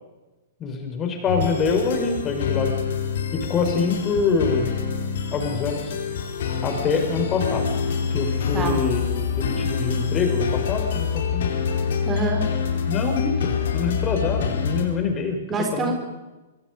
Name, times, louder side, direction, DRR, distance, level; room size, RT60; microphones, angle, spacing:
voice 1, 0.6-2.7 3.3-4.7 5.3-5.9 6.6-7.7 8.1-9.0 9.4-11.5 12.9-15.4 15.7-15.9, left 4 dB, 25° left, 5 dB, 5.5 m, -25 dB
sound 1, 1.3-14.9, left 6 dB, 55° left, 4.5 m, -26 dB
voice 2, 12.0-12.5 15.5-15.9, right 3 dB, 20° right, 4 dB, 3.9 m, -25 dB
25.5 x 25.0 x 5.4 m, 1.1 s
figure-of-eight pair, 110°, 0 cm